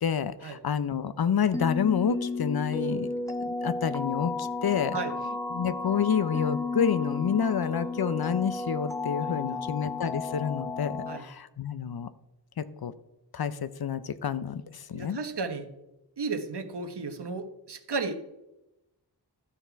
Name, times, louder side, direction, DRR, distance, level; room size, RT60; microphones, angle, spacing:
voice 1, 0.0-3.1 3.5-5.0 5.5-12.1 12.6-12.9 13.3-15.2, left 7 dB, 60° left, 14 dB, 0.6 m, -28 dB
sound 1, 1.5-11.2, left 3 dB, 10° left, 1.1 m, -33 dB
voice 2, 9.2-9.7 11.1-11.2 14.9-15.7 16.2-18.2, right 4 dB, 70° right, 8 dB, 1.1 m, -34 dB
13.0 x 6.0 x 4.6 m, 0.92 s
wide cardioid pair, 80°, 42 cm